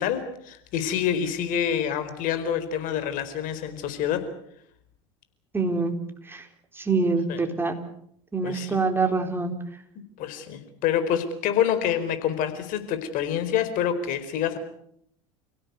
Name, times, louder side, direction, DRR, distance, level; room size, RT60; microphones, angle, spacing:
voice 1, 0.0-4.2 7.3-7.4 8.4-8.7 10.2-14.6, left 9 dB, 55° left, 10 dB, 4.5 m, -27 dB
voice 2, 5.5-5.9 6.2-6.5 6.7-7.8 8.3-9.5, right 4 dB, 15° right, 5 dB, 4.2 m, -25 dB
29.5 x 17.0 x 8.3 m, 0.72 s
hypercardioid pair, 95°, 17 cm